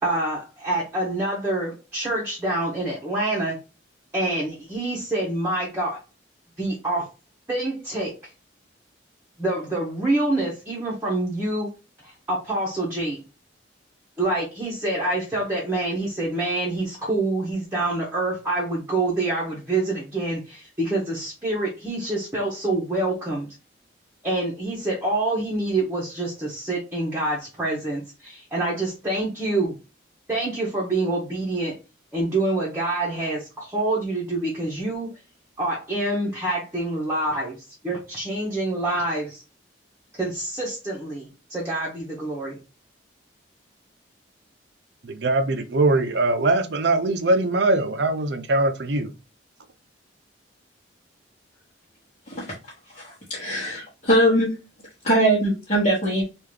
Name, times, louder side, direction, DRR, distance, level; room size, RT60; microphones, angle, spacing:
voice 1, 0.0-3.6 4.1-6.0 6.6-7.1 7.5-8.1 9.4-11.7 12.0-13.2 14.2-23.5 24.2-29.7 30.3-31.8 32.1-35.1 35.6-39.4 40.1-42.6, right 2 dB, 15° right, 1.0 m, -26 dB
voice 2, 45.0-49.1, right 2 dB, 60° right, 0.6 m, -22 dB
voice 3, 52.9-54.5 55.0-56.2, right 1 dB, 40° left, 1.2 m, -21 dB
3.7 x 2.5 x 3.1 m
head